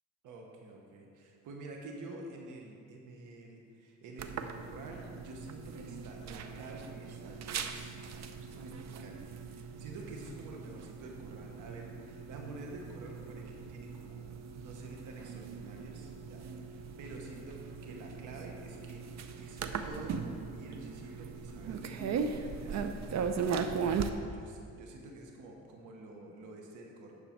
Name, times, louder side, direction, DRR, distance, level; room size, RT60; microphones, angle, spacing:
voice 1, 0.2-14.2 14.5-19.1 19.4-22.8 24.3-27.1, right 2 dB, 85° right, 1 dB, 1.2 m, -49 dB
sound 1, 4.2-24.1, right 6 dB, 65° right, 0.7 m, -39 dB
9.6 x 6.8 x 4.4 m, 2.6 s
cardioid pair, 90°, 30 cm